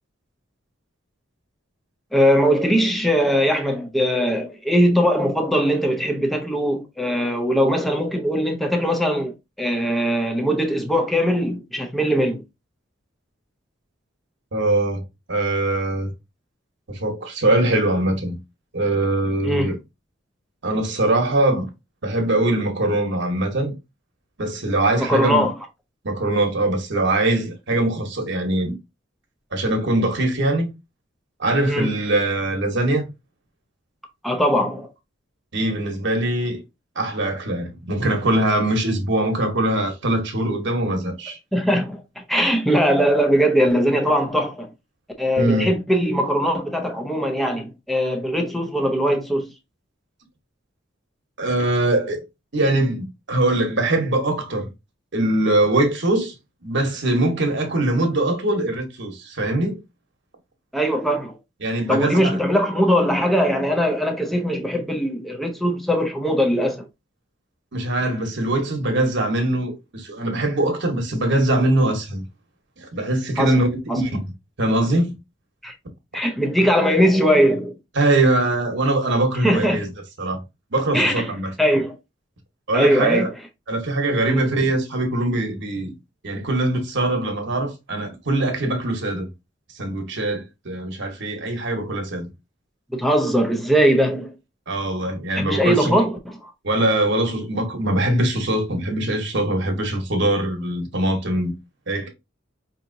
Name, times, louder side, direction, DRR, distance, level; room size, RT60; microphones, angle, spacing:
voice 1, 2.1-12.4 19.4-19.7 25.0-25.5 31.6-31.9 34.2-34.9 41.5-44.7 45.2-49.5 60.7-61.4 61.9-66.9 73.4-73.6 73.9-74.0 75.6-75.7 76.1-77.8 79.4-79.9 80.9-82.0 82.7-83.3 84.2-84.5 92.9-94.3 95.3-96.5, equal, ahead, 0.6 m, -20 dB
voice 2, 14.5-15.0 15.3-16.1 16.9-18.4 18.7-19.8 20.6-21.7 22.0-23.7 24.4-25.5 26.0-28.8 29.5-30.7 31.4-33.1 35.5-36.6 37.0-41.4 45.4-45.7 51.4-52.2 52.5-54.7 55.1-56.3 56.6-59.8 61.6-62.4 67.7-72.2 72.8-74.2 74.6-75.1 78.0-79.9 80.2-80.4 80.7-81.5 82.7-83.3 83.7-85.9 86.2-89.3 89.8-92.3 94.7-96.0 96.6-101.5 101.9-102.1, right 1 dB, 65° right, 1.1 m, -22 dB
4.8 x 2.8 x 2.6 m
head